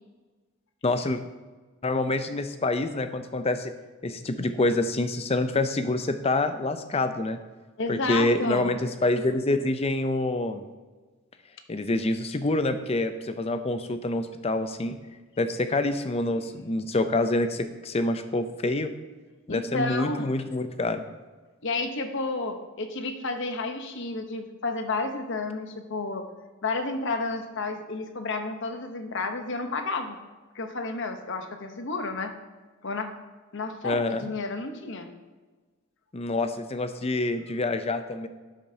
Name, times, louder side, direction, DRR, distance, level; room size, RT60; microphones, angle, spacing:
voice 1, 0.8-1.2 1.8-3.7 4.0-7.4 7.9-10.6 11.7-15.0 15.4-18.9 19.5-21.0 33.8-34.2 36.1-38.3, left 2 dB, 30° left, 9 dB, 0.5 m, -26 dB
voice 2, 7.8-8.7 19.5-20.3 21.6-26.2 26.6-30.2 30.5-32.3 32.8-33.1 33.5-35.1, left 3 dB, 60° left, 6 dB, 0.9 m, -31 dB
12.0 x 7.3 x 2.8 m, 1.3 s
head